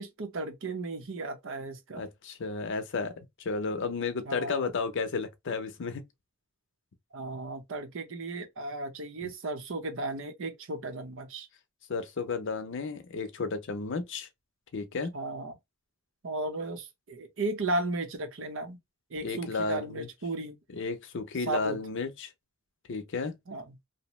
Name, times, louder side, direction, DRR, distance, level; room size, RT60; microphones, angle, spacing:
voice 1, 0.0-2.0 4.3-4.7 7.1-11.5 15.1-15.6 16.2-18.8 19.1-20.6 21.5-21.8 23.5-23.8, right 2 dB, 65° right, 0.7 m, -35 dB
voice 2, 1.9-6.0 11.9-14.3 14.7-15.1 19.2-20.1 20.7-22.3 22.9-23.3, left 4 dB, 65° left, 0.6 m, -33 dB
2.8 x 2.0 x 3.0 m
head